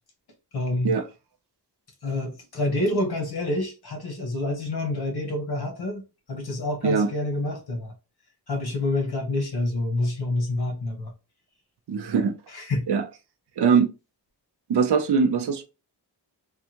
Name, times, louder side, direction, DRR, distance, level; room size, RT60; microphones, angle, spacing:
voice 1, 0.5-1.0 2.0-6.0 6.3-7.9 8.5-11.1 12.5-12.9, left 2 dB, 65° left, 1.2 m, -27 dB
voice 2, 11.9-12.3 12.9-13.0 13.6-13.9 14.7-15.6, right 5 dB, 70° right, 0.6 m, -21 dB
3.5 x 2.3 x 2.9 m
wide cardioid pair, 130°, 42 cm